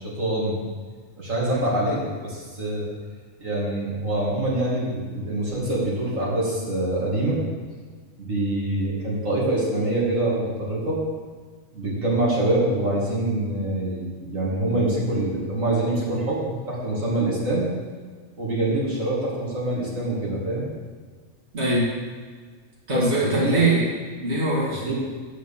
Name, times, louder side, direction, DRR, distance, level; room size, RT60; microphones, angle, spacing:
voice 1, 0.1-0.7 1.2-2.9 3.4-7.4 8.2-11.0 11.7-17.6 18.4-20.6 22.9-23.7 24.8-24.9, right 1 dB, 70° right, -6 dB, 2.9 m, -25 dB
voice 2, 21.5-21.9 22.9-23.9 24.2-24.8, right 1 dB, 55° right, -7 dB, 2.6 m, -22 dB
9.0 x 6.3 x 7.3 m, 1.5 s
omnidirectional pair, 1.4 m